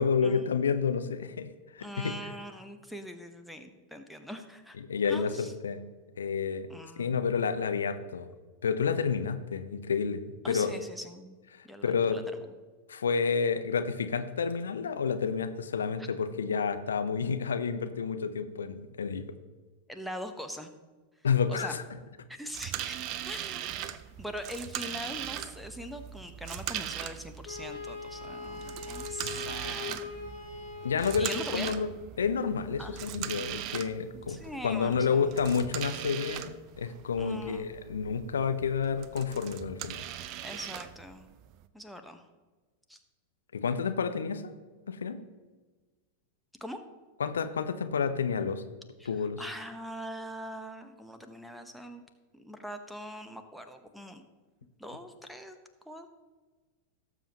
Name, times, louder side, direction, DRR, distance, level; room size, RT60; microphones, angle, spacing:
voice 1, 0.0-2.1 4.9-5.8 6.2-6.7 7.0-8.3 8.6-10.7 11.5-12.2 12.9-19.2 21.2-21.8 30.8-31.9 32.2-34.4 34.6-40.0 43.5-44.5 44.9-45.2 47.2-48.6 49.1-49.4, left 6 dB, 70° left, 9 dB, 0.7 m, -30 dB
voice 2, 1.8-4.8 5.1-5.5 6.7-7.2 10.4-11.4 11.6-12.2 16.0-16.1 19.9-20.7 21.5-21.8 22.3-23.0 23.2-30.0 31.2-31.7 32.8-33.0 34.3-35.4 37.2-37.7 40.4-41.3 41.7-42.2 42.9-43.0 46.6-46.8 49.0-52.0 52.3-54.2 54.8-55.6 55.9-56.1, equal, ahead, 5 dB, 1.0 m, -42 dB
sound 1, 22.5-41.7, right 11 dB, 40° right, 0.5 m, -40 dB
Wind instrument woodwind instrument, 27.4-31.9, left 4 dB, 35° left, 3.8 m, -41 dB
18.0 x 7.1 x 3.0 m, 1.3 s
figure-of-eight pair, 90°, 0 cm